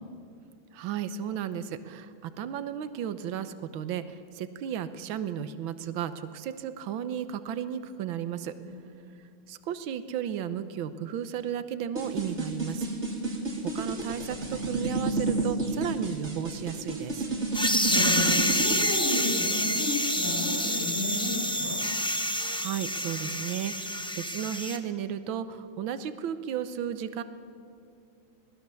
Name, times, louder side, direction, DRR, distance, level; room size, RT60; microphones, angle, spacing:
voice 1, 0.7-8.5 9.5-12.9 13.7-17.3 22.5-27.2, right 9 dB, 80° right, 11 dB, 1.7 m, -34 dB
sound 1, 12.0-18.8, right 2 dB, 35° right, 2.9 m, -31 dB
sound 2, 17.5-24.8, equal, 5° left, 0.7 m, -28 dB
voice 2, 17.9-21.8, left 2 dB, 65° left, -10 dB, 8.9 m, -33 dB
26.0 x 19.0 x 7.0 m, 2.5 s
omnidirectional pair, 2.2 m